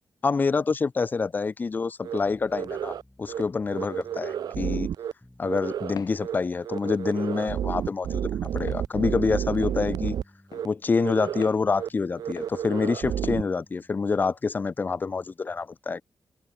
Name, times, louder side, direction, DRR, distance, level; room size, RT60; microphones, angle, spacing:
voice 1, 0.2-4.9 5.4-10.2 10.6-16.0, left 4 dB, 30° left, 0.6 m, -27 dB
sound 1, 2.0-2.2 2.5-3.0 3.3-3.4 3.7-5.1 5.4-5.9 6.2-6.3 6.6-10.2 10.5-10.7 11.0-11.5 11.7-11.9 12.2-13.4, right 9 dB, 85° right, 0.4 m, -31 dB
sound 2, 2.2-14.1, left 1 dB, 5° left, 3.9 m, -57 dB
Walk footsteps, 6.0-6.2 6.9-7.0 7.8-7.9 8.7-8.9 9.6-9.8 10.5-10.7 11.4-11.6 12.4-12.6 13.2-13.4, left 8 dB, 70° left, 3.4 m, -42 dB
open air
wide cardioid pair, 175°, 7 cm